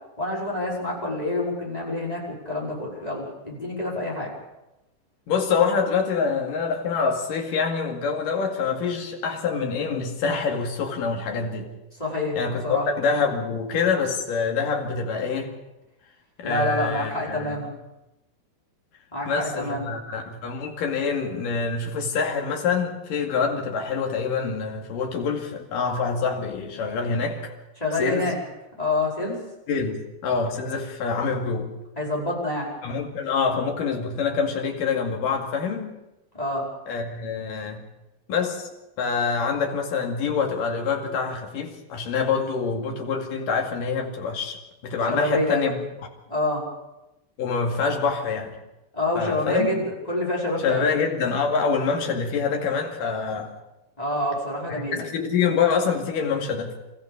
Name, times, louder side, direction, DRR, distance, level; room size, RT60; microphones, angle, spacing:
voice 1, 0.2-4.3 12.0-12.8 16.4-17.7 19.1-19.9 27.8-28.4 28.8-29.4 32.0-32.7 36.3-36.7 45.1-45.8 46.3-46.6 48.9-50.9 54.0-55.0, left 1 dB, 10° left, 5.0 m, -27 dB
voice 2, 5.3-11.7 12.4-15.5 16.4-17.6 19.3-27.5 28.0-28.3 29.7-31.7 32.8-35.9 36.9-37.8 38.3-38.7 39.0-44.6 44.8-45.8 47.4-48.6 49.2-49.7 50.6-53.5 54.7-56.7, left 5 dB, 60° left, 3.8 m, -26 dB
26.5 x 14.5 x 7.0 m
omnidirectional pair, 4.4 m